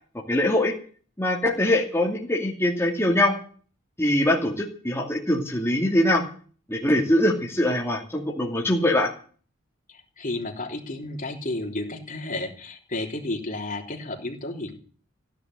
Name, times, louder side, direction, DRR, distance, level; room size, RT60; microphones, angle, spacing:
voice 1, 0.3-0.7 1.2-3.4 4.0-6.2 6.7-9.1, left 1 dB, 15° left, -2 dB, 2.5 m, -22 dB
voice 2, 9.9-14.7, left 2 dB, 45° left, 2 dB, 3.5 m, -32 dB
15.5 x 10.5 x 8.0 m, 0.43 s
head